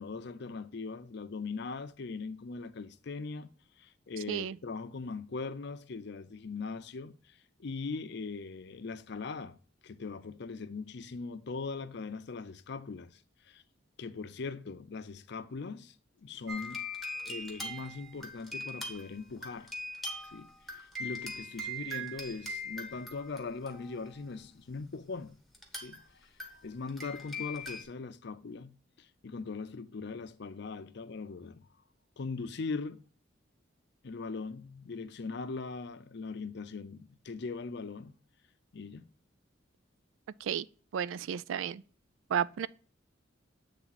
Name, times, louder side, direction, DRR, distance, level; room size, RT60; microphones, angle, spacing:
voice 1, 0.0-9.6 9.8-13.2 13.4-13.6 14.0-16.0 16.2-16.8 17.1-19.7 20.3-25.4 25.7-31.7 32.2-33.0 34.0-38.1 38.7-39.1, left 4 dB, 60° left, 0.5 m, -40 dB
sound 1, 16.5-24.2 25.5-26.0 26.4-27.8, left 1 dB, ahead, 1.0 m, -41 dB
voice 2, 40.9-41.8 42.3-42.7, right 8 dB, 90° right, 0.3 m, -32 dB
8.4 x 3.4 x 4.0 m
head